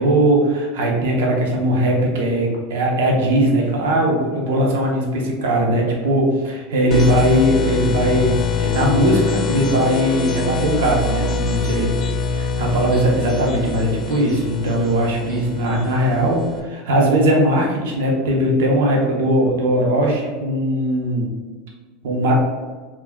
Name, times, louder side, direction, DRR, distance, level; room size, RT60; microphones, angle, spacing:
voice 1, 0.0-11.9 12.3-21.3 22.0-22.4, right 1 dB, 85° right, -1 dB, 0.7 m, -19 dB
sound 1, 6.9-16.6, left 5 dB, 35° left, 0.3 m, -25 dB
3.4 x 2.3 x 2.2 m, 1.4 s
supercardioid pair, 145°, 0 cm